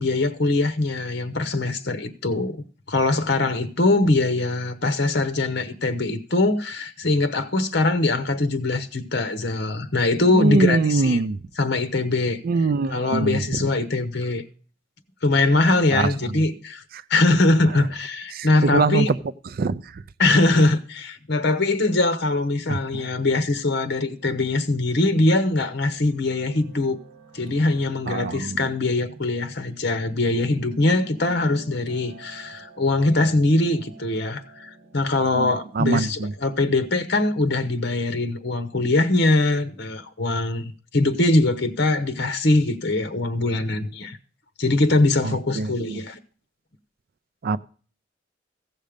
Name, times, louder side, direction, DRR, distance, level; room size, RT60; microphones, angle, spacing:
voice 1, 0.0-2.6 2.9-11.2 11.6-12.4 12.9-14.4 15.2-16.8 17.1-19.1 20.2-27.0 27.3-44.2 44.6-46.2, left 2 dB, 60° left, 1.0 m, -22 dB
voice 2, 10.3-11.4 12.4-13.6 15.9-16.4 16.9-17.0 18.3-19.1 19.5-20.0 22.7-23.1 28.1-28.6 35.3-36.3 45.2-46.0 47.4-47.6, right 3 dB, 50° right, 0.4 m, -24 dB
Piano, 22.4-36.9, right 2 dB, 70° right, 2.0 m, -49 dB
15.5 x 6.5 x 5.1 m
head